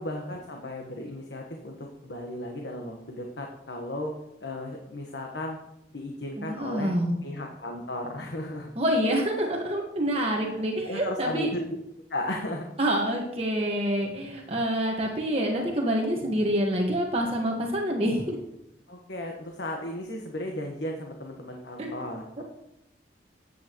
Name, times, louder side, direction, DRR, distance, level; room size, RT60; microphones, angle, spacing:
voice 1, 0.0-4.1 4.4-5.6 5.9-6.9 7.2-8.7 10.5-11.6 12.1-12.7 18.9-22.4, left 1 dB, 80° left, 1 dB, 1.3 m, -35 dB
voice 2, 6.4-7.2 8.8-11.5 12.8-18.4 21.8-21.9, equal, 35° right, 0 dB, 1.5 m, -27 dB
14.0 x 9.3 x 3.1 m, 0.84 s
head